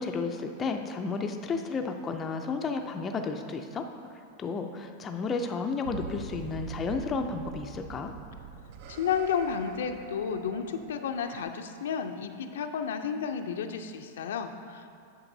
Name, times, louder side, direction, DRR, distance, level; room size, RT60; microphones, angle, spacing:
voice 1, 0.0-3.9 4.4-8.1, left 4 dB, 20° left, 5 dB, 0.3 m, -32 dB
sound 1, 5.8-11.4, right 6 dB, 55° right, 0.4 m, -43 dB
voice 2, 8.9-15.0, left 7 dB, 85° left, 6 dB, 0.4 m, -32 dB
8.8 x 6.5 x 2.7 m, 2.3 s
supercardioid pair, 155°, 0 cm